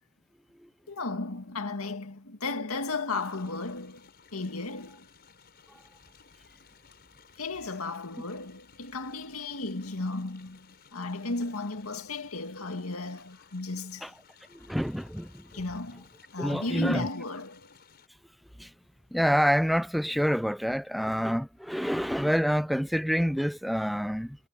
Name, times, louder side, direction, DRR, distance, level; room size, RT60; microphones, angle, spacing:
voice 1, 0.9-5.0 7.4-14.1 15.5-16.1 16.3-17.7, left 3 dB, 90° left, 2.1 m, -34 dB
sound 1, 3.2-18.1, left 6 dB, 50° left, 5.2 m, -58 dB
voice 2, 14.7-15.3 16.4-17.0 18.6-18.7 19.1-24.4, equal, ahead, 0.4 m, -27 dB
head